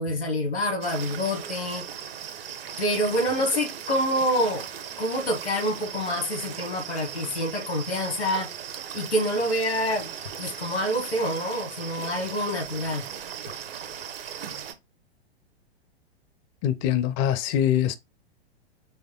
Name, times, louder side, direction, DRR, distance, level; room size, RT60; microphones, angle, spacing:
voice 1, 0.0-1.8 2.8-4.6 5.0-8.5 8.9-10.1 10.4-13.0, equal, 85° left, 1.4 m, -27 dB
sound 1, 0.8-14.7, right 8 dB, 60° right, 0.9 m, -38 dB
voice 2, 16.6-18.0, left 10 dB, 25° left, 0.4 m, -23 dB
4.4 x 3.2 x 3.6 m
figure-of-eight pair, 100°, 32 cm